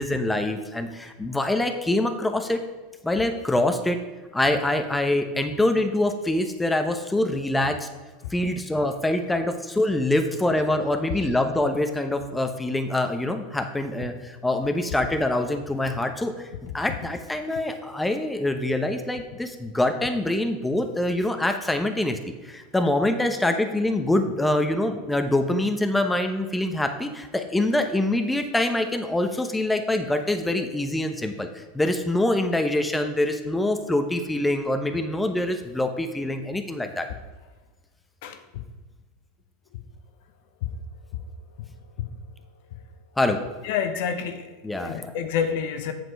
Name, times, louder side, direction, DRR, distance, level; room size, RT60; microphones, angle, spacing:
voice 1, 0.0-2.6 3.0-4.0 4.3-7.9 8.3-16.5 16.7-37.1 43.2-43.4 44.6-45.1, left 1 dB, 10° left, 6 dB, 0.9 m, -25 dB
voice 2, 38.2-38.6 42.0-42.1 43.6-44.5 44.8-45.9, left 7 dB, 65° left, 8 dB, 0.8 m, -28 dB
7.7 x 6.1 x 4.7 m, 1.3 s
hypercardioid pair, 95°, 0 cm